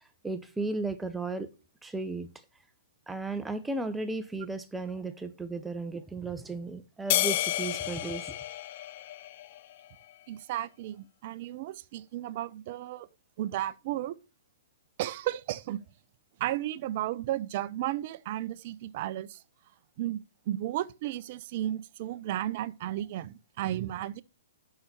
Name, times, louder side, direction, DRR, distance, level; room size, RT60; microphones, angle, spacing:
voice 1, 0.2-1.5 1.8-2.3 3.1-8.4, right 3 dB, 5° right, 0.8 m, -35 dB
sound 1, 7.1-9.7, left 14 dB, 45° left, 0.5 m, -31 dB
voice 2, 10.3-13.1 13.4-14.2 15.0-15.8 16.4-19.4 20.0-24.2, right 13 dB, 50° right, 0.5 m, -34 dB
5.8 x 5.6 x 6.5 m
hypercardioid pair, 130°, 0 cm